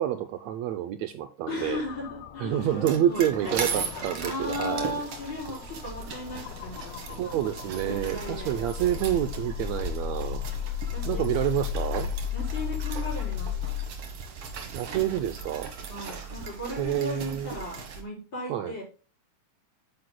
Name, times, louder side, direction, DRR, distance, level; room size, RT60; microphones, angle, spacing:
voice 1, 0.0-1.8 2.4-5.0 7.2-10.5 11.1-12.1 14.7-15.7 16.7-17.5 18.5-18.7, right 11 dB, 75° right, 9 dB, 1.8 m, -28 dB
voice 2, 1.5-3.3 3.6-7.3 7.8-9.0 10.9-11.3 12.3-13.7 15.9-18.8, left 2 dB, 40° left, -3 dB, 5.1 m, -37 dB
sound 1, 1.6-13.9, left 14 dB, 75° left, 1.8 m, -36 dB
sound 2, 2.6-18.0, right 5 dB, 55° right, 2.3 m, -37 dB
10.5 x 9.4 x 2.2 m, 0.35 s
omnidirectional pair, 3.4 m